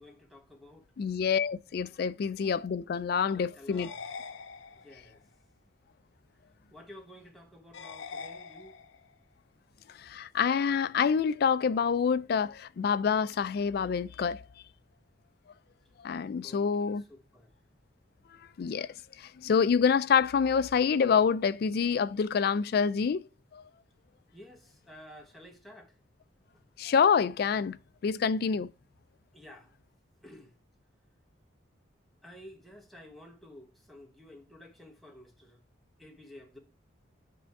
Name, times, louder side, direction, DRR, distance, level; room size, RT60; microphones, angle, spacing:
voice 1, 0.0-0.9 3.3-4.0 4.8-5.2 6.7-8.8 16.4-17.5 24.3-26.0 29.3-29.7 30.2-30.6 32.2-35.6 36.0-36.6, left 1 dB, ahead, 1.1 m, -52 dB
voice 2, 1.0-3.9 10.0-14.4 16.0-17.0 18.6-18.9 19.2-23.2 23.5-23.6 26.8-27.8 28.0-28.7, left 6 dB, 55° left, 0.3 m, -27 dB
sound 1, 3.7-5.1 7.7-9.1, left 5 dB, 90° left, 0.6 m, -44 dB
7.7 x 3.4 x 4.6 m
head